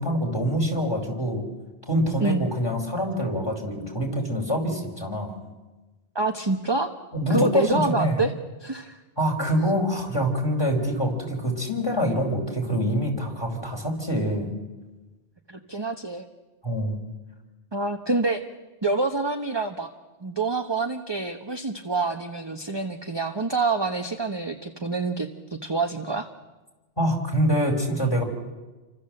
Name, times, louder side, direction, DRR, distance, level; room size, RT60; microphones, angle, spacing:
voice 1, 0.0-1.4 1.9-5.3 7.1-8.2 9.2-14.5 16.6-17.0 27.0-28.2, equal, 20° left, 3 dB, 4.9 m, -25 dB
voice 2, 6.1-6.9 7.3-8.3 8.6-9.0 15.5-16.3 17.7-18.4 18.8-19.9 20.2-26.3, right 3 dB, 25° right, 6 dB, 1.0 m, -27 dB
29.0 x 25.0 x 7.7 m, 1.2 s
omnidirectional pair, 1.2 m